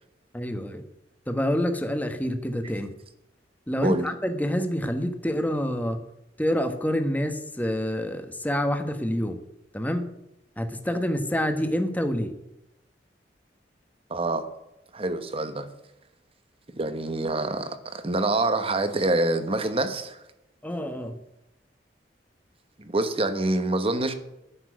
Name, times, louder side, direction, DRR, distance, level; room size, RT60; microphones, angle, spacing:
voice 1, 0.3-0.8 1.3-2.9 3.7-6.0 6.4-9.4 9.7-10.1 10.6-12.3 20.6-21.2, equal, 10° left, 7 dB, 1.2 m, -27 dB
voice 2, 14.1-14.4 14.9-15.7 16.8-20.2 22.8-24.1, right 2 dB, 35° right, 9 dB, 1.2 m, -26 dB
10.0 x 7.3 x 8.3 m, 0.89 s
head